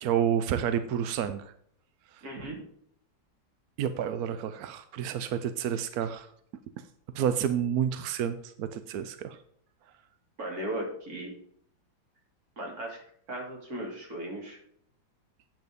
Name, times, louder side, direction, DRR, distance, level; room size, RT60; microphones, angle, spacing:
voice 1, 0.0-1.5 2.1-2.2 3.8-6.3 7.1-9.4, right 9 dB, 70° right, 11 dB, 0.9 m, -29 dB
voice 2, 2.2-2.6 10.4-11.3 12.6-13.0 13.3-14.6, right 1 dB, 50° right, 0 dB, 3.0 m, -36 dB
9.0 x 5.9 x 5.1 m, 0.65 s
omnidirectional pair, 2.1 m